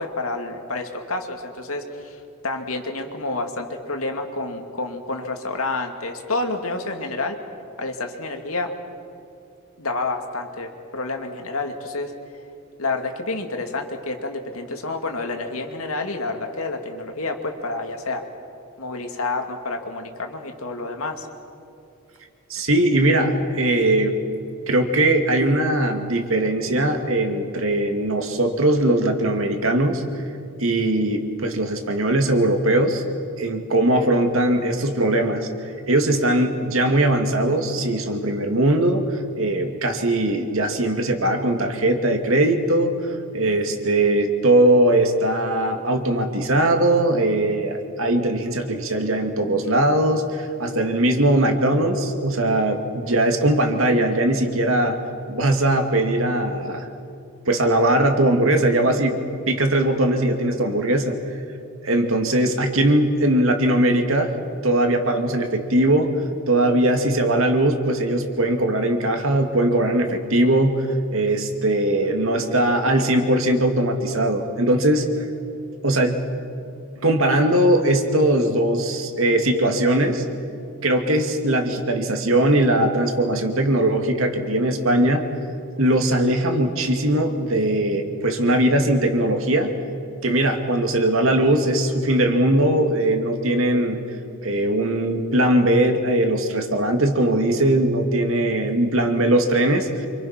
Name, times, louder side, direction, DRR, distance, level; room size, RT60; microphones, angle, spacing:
voice 1, 0.0-7.4 7.8-8.7 9.8-12.1 12.8-18.2 18.8-21.3 52.7-53.1, left 2 dB, 85° left, 4 dB, 2.5 m, -29 dB
voice 2, 22.5-24.1 24.7-30.0 30.6-33.0 33.4-35.5 35.9-39.0 39.4-43.0 43.3-55.0 55.3-56.9 57.5-59.2 59.5-61.2 61.8-64.3 64.6-66.1 66.5-70.9 71.1-75.1 75.8-76.2 77.0-80.2 80.8-85.2 85.8-89.7 90.2-94.0 94.4-100.1, right 1 dB, 70° right, 5 dB, 2.3 m, -20 dB
27.5 x 25.5 x 5.9 m, 2.6 s
head